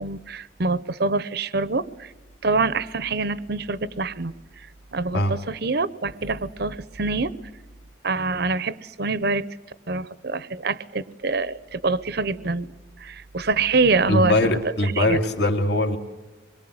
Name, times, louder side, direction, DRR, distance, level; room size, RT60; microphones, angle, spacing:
voice 1, 0.0-2.1 2.4-4.7 4.9-7.3 8.0-9.4 9.9-12.7 13.0-15.2, right 3 dB, 50° right, 17 dB, 0.8 m, -25 dB
voice 2, 14.1-16.0, left 1 dB, 55° left, 6 dB, 2.5 m, -21 dB
25.5 x 22.0 x 8.0 m, 1.2 s
head